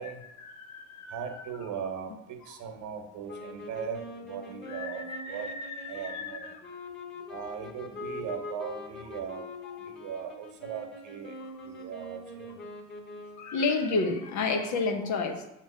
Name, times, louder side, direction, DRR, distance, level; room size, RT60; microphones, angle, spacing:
voice 1, 0.4-1.2 4.7-6.7 8.6-8.7 11.4-11.7 13.4-15.4, left 3 dB, 50° left, 4 dB, 1.0 m, -31 dB
voice 2, 1.1-5.5 5.9-6.5 7.3-9.5 9.8-11.3 11.6-12.6, right 7 dB, 55° right, 5 dB, 1.0 m, -38 dB
sound 1, 3.3-13.6, left 2 dB, 25° left, 2.0 m, -43 dB
7.4 x 3.1 x 4.9 m, 0.86 s
hypercardioid pair, 60°, 37 cm